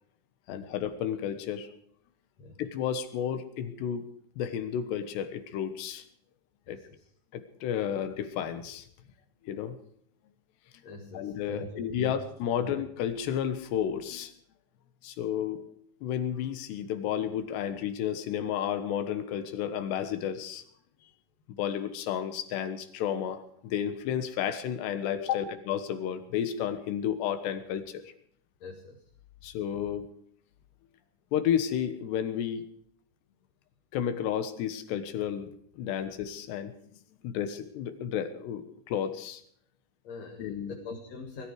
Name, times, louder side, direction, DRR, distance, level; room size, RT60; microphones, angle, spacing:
voice 1, 0.5-1.7 2.6-4.0 4.4-6.0 6.7-6.8 7.3-8.9 9.5-9.8 11.1-14.3 15.0-15.6 16.0-20.6 21.5-28.0 29.4-30.1 31.3-32.7 33.9-35.5 35.8-36.7 37.2-39.4 40.4-40.8, left 9 dB, 80° left, 10 dB, 3.5 m, -32 dB
voice 2, 6.7-7.1 10.8-12.2 12.6-12.8 28.6-29.0 40.0-41.5, left 3 dB, 50° left, 1 dB, 2.5 m, -43 dB
21.0 x 13.5 x 4.8 m, 0.64 s
omnidirectional pair, 4.8 m